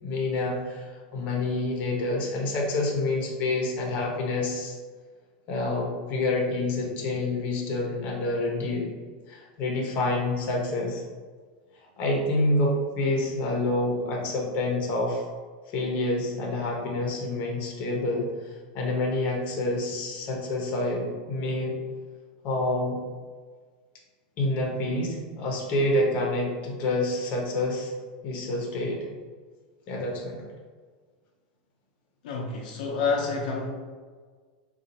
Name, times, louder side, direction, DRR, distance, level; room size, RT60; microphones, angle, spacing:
voice 1, 0.0-4.8 5.5-8.9 9.3-11.0 12.0-15.2 15.7-21.8 22.4-23.0 24.4-27.9 28.2-29.1 29.9-30.4, left 2 dB, 35° left, -1 dB, 0.9 m, -27 dB
voice 2, 32.2-33.7, left 4 dB, 75° left, -1 dB, 0.6 m, -28 dB
4.2 x 2.4 x 2.7 m, 1.5 s
supercardioid pair, 155°, 5 cm